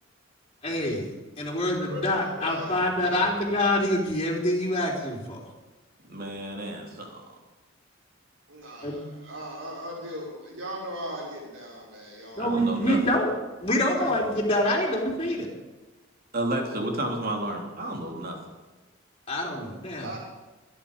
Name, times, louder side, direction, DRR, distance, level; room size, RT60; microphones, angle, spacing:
voice 1, 0.6-1.1 1.4-5.4 8.8-9.0 12.4-15.5 19.3-20.1, left 1 dB, 30° left, -2 dB, 3.6 m, -26 dB
voice 2, 1.8-3.1 8.5-12.8 14.0-14.1 20.0-20.2, equal, 65° right, -3 dB, 6.2 m, -38 dB
voice 3, 6.0-7.2 12.4-13.0 16.3-18.4, right 1 dB, 45° right, 2 dB, 3.2 m, -31 dB
26.5 x 10.5 x 5.2 m, 1.2 s
head